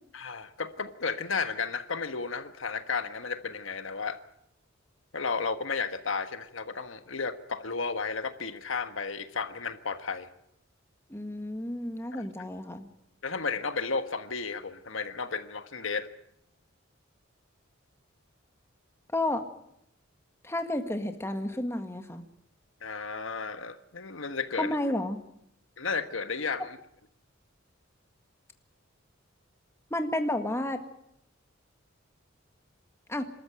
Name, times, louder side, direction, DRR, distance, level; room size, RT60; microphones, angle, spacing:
voice 1, 0.1-4.2 5.1-10.3 12.1-12.2 13.2-16.1 22.8-24.8 25.8-26.8, left 4 dB, 75° left, 9 dB, 1.4 m, -33 dB
voice 2, 11.1-12.9 19.1-19.4 20.4-22.2 24.6-25.2 29.9-30.8 33.1-33.2, left 1 dB, 15° left, 6 dB, 1.8 m, -31 dB
27.0 x 13.5 x 9.0 m, 0.76 s
head